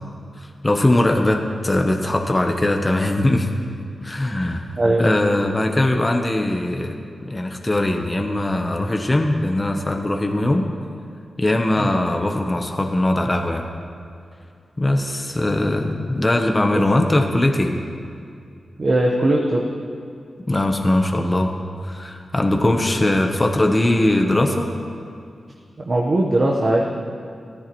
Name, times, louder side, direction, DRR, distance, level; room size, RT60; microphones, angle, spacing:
voice 1, 0.4-3.5 4.0-4.7 5.0-7.0 7.2-10.6 11.4-13.7 14.8-17.8 20.5-21.5 21.8-24.7, left 1 dB, 20° left, 3 dB, 0.8 m, -20 dB
voice 2, 4.8-5.1 11.8-11.9 16.7-16.8 18.8-19.6 25.8-26.8, right 1 dB, 35° right, -2 dB, 1.0 m, -19 dB
16.0 x 14.5 x 3.1 m, 2.4 s
wide cardioid pair, 130°, 0 cm